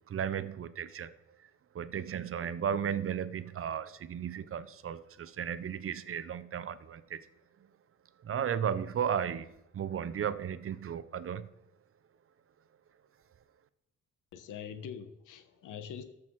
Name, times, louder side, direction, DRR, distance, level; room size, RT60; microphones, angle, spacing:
voice 1, 0.1-1.1 1.7-7.2 8.2-11.5, right 8 dB, 45° right, 0.8 m, -35 dB
voice 2, 14.3-16.0, left 8 dB, 90° left, 1.2 m, -43 dB
13.5 x 6.1 x 4.7 m
cardioid pair, 90°, 30 cm